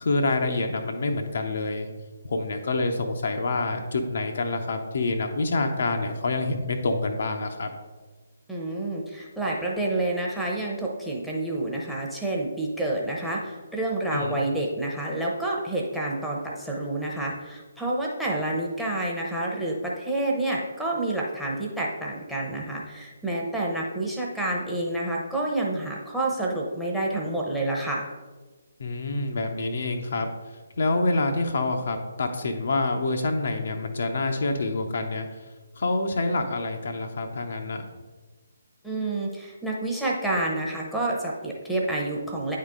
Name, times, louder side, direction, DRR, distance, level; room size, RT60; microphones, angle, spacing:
voice 1, 0.0-1.9 2.3-7.7 14.1-14.4 28.8-30.3 30.8-35.3 35.8-37.8, left 2 dB, 50° left, 4 dB, 0.6 m, -27 dB
voice 2, 8.5-28.1 38.8-42.6, right 2 dB, ahead, -3 dB, 0.9 m, -28 dB
9.4 x 3.7 x 3.7 m, 1.3 s
figure-of-eight pair, 140°, 0 cm